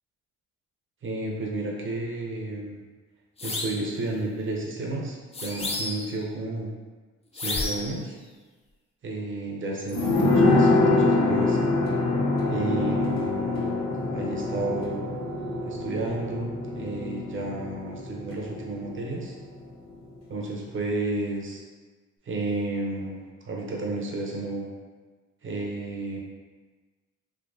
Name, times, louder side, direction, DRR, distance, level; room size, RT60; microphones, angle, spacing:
voice 1, 1.0-2.8 3.4-6.7 7.3-8.2 9.0-11.6 12.5-13.8 14.1-15.0 15.7-19.3 20.3-21.6 22.2-24.7 25.4-26.2, right 2 dB, 40° right, -1 dB, 0.8 m, -32 dB
sound 1, 3.4-3.9 5.3-6.2 7.4-8.0, left 2 dB, 20° left, 0.4 m, -31 dB
sound 2, 9.9-19.2 19.5-19.6, left 2 dB, 60° left, 1.0 m, -25 dB
3.4 x 2.8 x 2.6 m, 1.3 s
cardioid pair, 90°, 30 cm